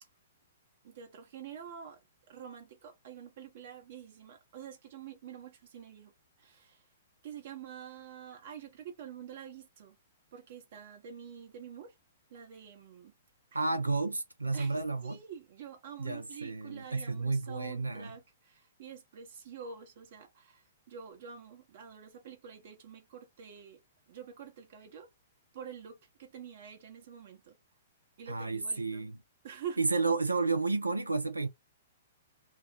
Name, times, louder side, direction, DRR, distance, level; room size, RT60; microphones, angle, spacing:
voice 1, 0.8-2.0 2.3-6.1 6.4-6.9 7.2-10.0 10.3-11.9 12.3-13.1 13.5-13.6 14.5-23.8 24.1-25.1 25.5-27.5 28.2-29.0 29.4-29.8, right 8 dB, 55° right, 0.9 m, -47 dB
voice 2, 13.5-15.2 16.0-18.1 28.3-29.1 29.8-31.5, right 3 dB, 85° right, 0.4 m, -31 dB
2.3 x 2.1 x 3.5 m
figure-of-eight pair, 115°, 0 cm